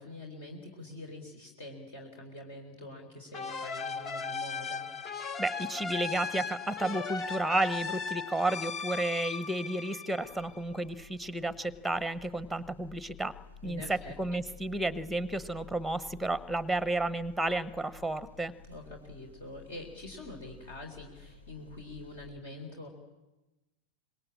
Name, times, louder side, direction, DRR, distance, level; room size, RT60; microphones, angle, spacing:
voice 1, 0.0-4.9 13.6-14.4 18.7-22.9, left 2 dB, 55° left, 3 dB, 4.0 m, -45 dB
sound 1, 3.3-10.8, left 5 dB, 30° left, 1.1 m, -37 dB
voice 2, 5.4-13.3 13.6-18.5, right 2 dB, ahead, 17 dB, 1.1 m, -32 dB
sound 2, 10.2-22.3, left 5 dB, 85° left, 3.5 m, -53 dB
25.5 x 21.5 x 8.8 m, 1.1 s
figure-of-eight pair, 90°, 0 cm